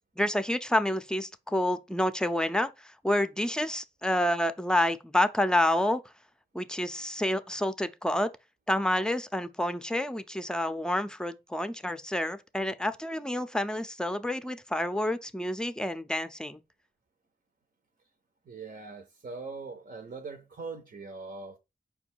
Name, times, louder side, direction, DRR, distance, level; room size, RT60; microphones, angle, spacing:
voice 1, 0.2-6.0 6.5-8.3 8.7-16.6, left 1 dB, 5° left, 0.5 m, -28 dB
voice 2, 18.5-21.6, right 4 dB, 55° right, 0.7 m, -41 dB
5.0 x 2.3 x 4.4 m
cardioid pair, 45°, 19 cm